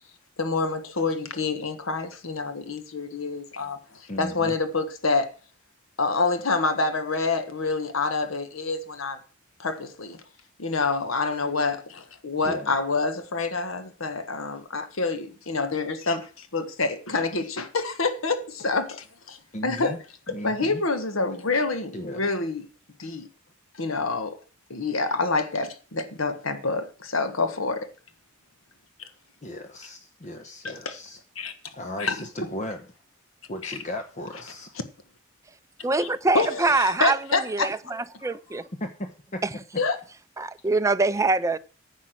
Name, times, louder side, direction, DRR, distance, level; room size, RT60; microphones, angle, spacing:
voice 1, 0.4-5.3 6.0-9.2 9.6-10.2 10.6-19.4 19.6-20.0 20.3-22.7 23.0-23.3 23.8-24.4 24.7-27.9 29.0-29.1 30.6-31.0 31.3-31.5 32.0-32.5 33.6-33.7 36.0-36.1 36.3-37.7 39.8-40.0, left 3 dB, 80° left, 1.4 m, -27 dB
voice 2, 4.1-4.5 12.4-12.8 19.5-20.0 20.3-20.8 21.9-22.3 29.4-31.2 31.7-32.9 33.5-34.7 38.2-39.4, left 1 dB, 35° left, 1.0 m, -36 dB
voice 3, 35.8-37.2 37.5-38.7 39.4-39.5 40.4-41.6, right 3 dB, 15° right, 0.5 m, -24 dB
10.5 x 7.3 x 6.2 m
head